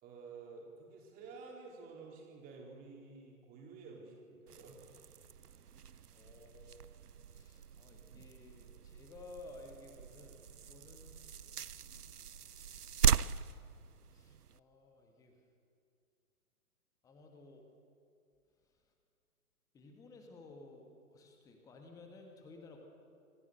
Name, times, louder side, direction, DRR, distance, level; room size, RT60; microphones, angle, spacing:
voice 1, 0.0-4.8 11.6-12.1, right 4 dB, 20° right, -1 dB, 3.9 m, -52 dB
sound 1, 4.5-14.6, right 8 dB, 80° right, 0.6 m, -39 dB
voice 2, 6.1-6.9 7.3-11.7 12.1-12.2 12.7-12.8 14.1-15.4 17.0-17.7 19.7-22.8, left 3 dB, 5° left, 3 dB, 1.4 m, -55 dB
26.5 x 15.0 x 6.6 m, 2.4 s
figure-of-eight pair, 125°, 45 cm